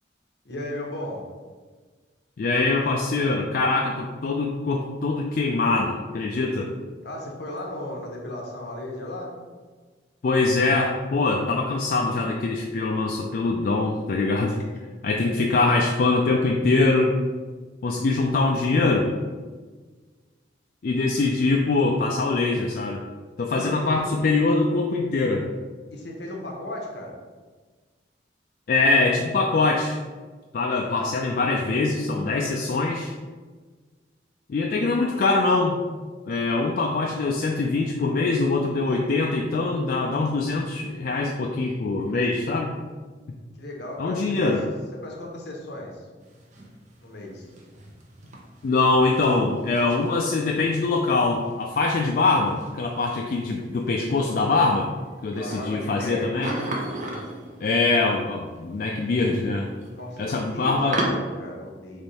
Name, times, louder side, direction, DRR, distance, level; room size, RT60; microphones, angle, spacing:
voice 1, 0.4-1.3 7.0-9.3 23.5-24.2 25.9-27.2 43.5-44.6 45.0-46.1 47.0-47.5 55.3-56.6 59.7-62.0, left 1 dB, 70° left, -1 dB, 1.0 m, -36 dB
voice 2, 2.4-6.7 10.2-14.6 15.0-17.1 17.8-19.1 20.8-23.0 23.4-25.5 28.7-30.0 30.5-33.1 34.5-35.8 36.3-42.7 44.0-44.6 48.6-54.9 55.2-56.5 57.6-59.7 60.2-61.0, left 3 dB, 50° left, 0 dB, 0.3 m, -23 dB
sound 1, 46.2-61.1, right 2 dB, 45° right, 0.6 m, -38 dB
3.5 x 3.4 x 4.1 m, 1.4 s
head